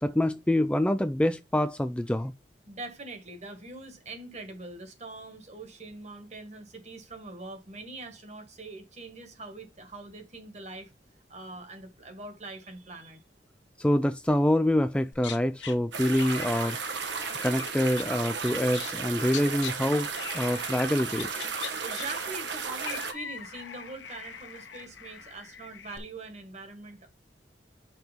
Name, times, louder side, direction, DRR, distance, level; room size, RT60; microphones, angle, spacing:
voice 1, 0.0-2.3 13.8-20.1 20.3-21.4, left 1 dB, 5° left, 0.3 m, -26 dB
voice 2, 2.7-10.9 11.3-13.2 21.8-27.1, right 3 dB, 40° right, 1.7 m, -43 dB
sound 1, 15.1-15.8 16.1-19.0 19.3-19.7 20.2-20.9 21.1-26.0, left 8 dB, 90° left, 1.1 m, -42 dB
sound 2, 15.9-23.1, right 5 dB, 80° right, 1.3 m, -34 dB
5.9 x 4.5 x 5.2 m
head